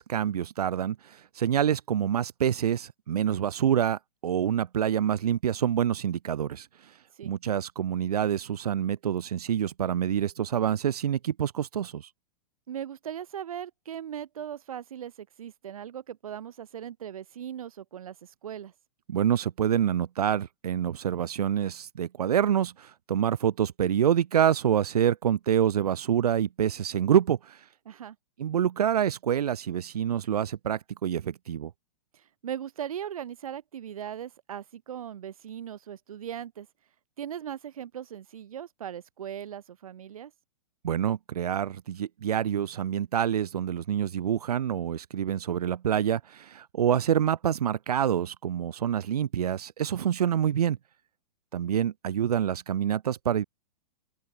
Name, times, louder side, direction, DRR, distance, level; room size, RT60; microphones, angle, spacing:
voice 1, 0.0-6.7 7.2-12.1 19.1-27.6 28.4-31.7 40.8-50.8 51.5-53.5, right 9 dB, 80° right, 1.6 m, -27 dB
voice 2, 12.7-18.7 27.9-28.2 32.1-36.7 37.2-40.3, right 9 dB, 65° right, 3.5 m, -39 dB
open air
hypercardioid pair, 180°, 19 cm